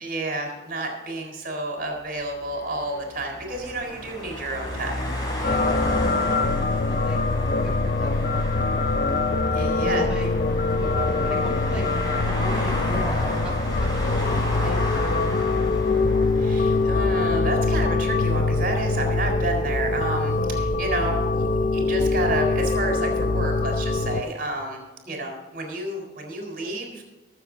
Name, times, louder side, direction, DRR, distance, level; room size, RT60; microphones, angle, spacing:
voice 1, 0.0-5.1 5.4-5.5 8.9-9.0 9.5-10.0 16.4-21.4 21.7-24.8 25.1-27.0, right 1 dB, 50° right, 2 dB, 4.0 m, -30 dB
sound 1, 2.3-17.7, left 1 dB, 20° left, 4.0 m, -33 dB
sound 2, 5.4-24.2, left 3 dB, 45° left, 0.6 m, -23 dB
voice 2, 5.4-9.3 9.9-10.3 10.8-11.9 12.2-15.0 15.4-16.2 25.1-25.3, equal, 5° right, -5 dB, 2.2 m, -38 dB
22.0 x 7.6 x 3.9 m, 1.1 s
head